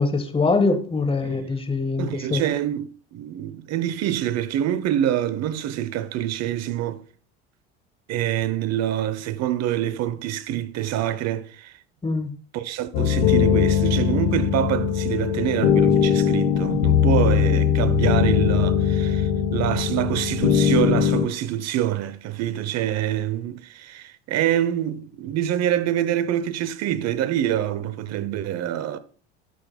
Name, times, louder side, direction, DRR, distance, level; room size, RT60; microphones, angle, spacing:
voice 1, 0.0-2.4 12.0-12.3, left 3 dB, 15° left, 1.3 m, -23 dB
voice 2, 2.0-7.0 8.1-11.7 12.5-29.0, right 11 dB, 50° right, 0.8 m, -26 dB
sound 1, 12.9-21.3, left 8 dB, 75° left, 1.1 m, -20 dB
11.5 x 6.8 x 2.3 m
hypercardioid pair, 80°, 33 cm